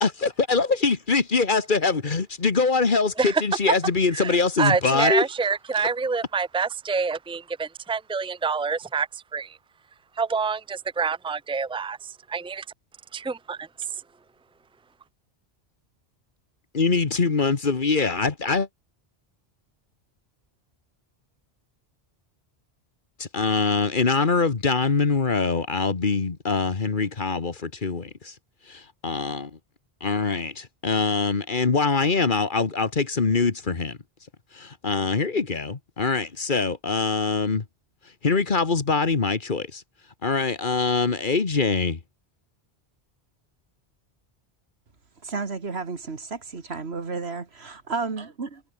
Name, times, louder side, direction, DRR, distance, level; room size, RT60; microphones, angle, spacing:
voice 1, 0.0-5.2 16.7-18.7 23.2-28.3 28.7-29.5 30.0-34.0 34.5-37.6 38.2-39.8 40.2-42.0, left 4 dB, 50° left, 1.6 m, -23 dB
voice 2, 4.1-9.6 10.2-12.6 13.1-13.7, right 5 dB, 5° right, 0.8 m, -27 dB
voice 3, 45.2-48.6, right 4 dB, 80° right, 2.3 m, -32 dB
omnidirectional pair, 1.1 m